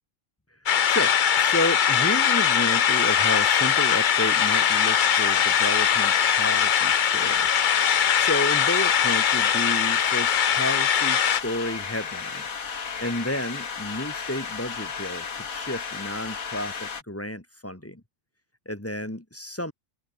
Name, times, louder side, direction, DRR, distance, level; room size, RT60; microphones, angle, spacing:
sound 1, 0.7-11.4, left 8 dB, 45° left, 0.7 m, -21 dB
voice 1, 0.8-7.8 8.2-12.5 13.0-18.0 18.7-19.7, left 1 dB, 10° left, 2.3 m, -32 dB
sound 2, 2.9-17.0, left 6 dB, 80° left, 2.2 m, -34 dB
open air
omnidirectional pair, 1.4 m